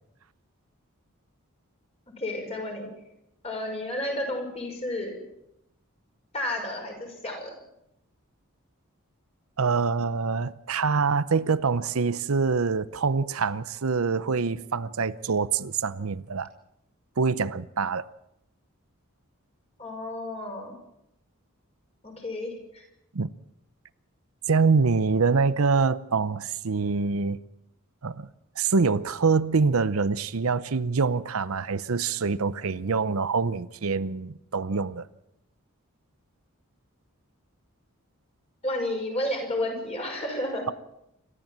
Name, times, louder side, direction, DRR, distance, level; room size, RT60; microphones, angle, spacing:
voice 1, 2.2-2.9 3.4-5.2 6.3-7.5 19.8-20.7 22.0-22.8 38.6-40.7, left 1 dB, 30° left, 5.8 m, -31 dB
voice 2, 9.6-16.5 17.2-18.1 23.1-23.3 24.5-27.4 28.0-28.3 28.6-35.1, right 4 dB, 75° right, 0.7 m, -25 dB
27.5 x 13.5 x 7.4 m
head